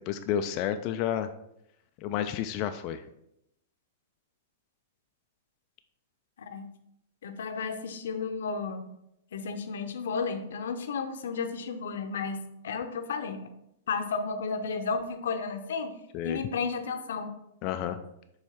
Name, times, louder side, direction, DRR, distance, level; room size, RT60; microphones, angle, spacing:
voice 1, 0.1-1.3 2.0-3.0 16.1-16.4 17.6-18.0, left 10 dB, 40° left, 9 dB, 0.4 m, -30 dB
voice 2, 7.2-8.8 9.3-13.5 13.9-15.9 16.2-17.3, left 5 dB, 70° left, 7 dB, 0.7 m, -33 dB
7.3 x 3.2 x 4.4 m, 0.80 s
hypercardioid pair, 105°, 0 cm